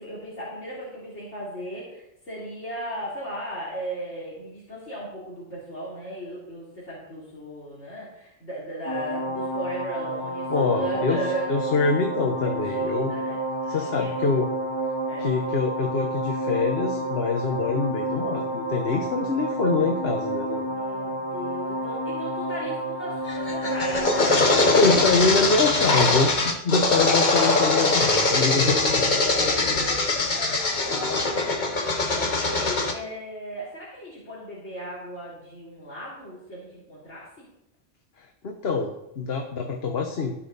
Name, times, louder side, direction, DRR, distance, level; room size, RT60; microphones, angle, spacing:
voice 1, 0.0-11.9 12.4-12.5 12.8-14.1 15.1-15.4 20.7-25.4 29.3-31.5 32.1-37.4, equal, 85° left, -9 dB, 3.7 m, -36 dB
sound 1, 8.8-25.0, right 1 dB, 45° right, 2.0 m, -30 dB
voice 2, 10.5-13.1 13.7-14.5 15.2-20.7 24.7-29.1 38.4-40.3, left 4 dB, 60° left, 3 dB, 1.2 m, -25 dB
sound 2, 23.3-32.9, left 3 dB, 45° left, 1.2 m, -22 dB
18.5 x 6.3 x 4.0 m, 0.86 s
omnidirectional pair, 1.2 m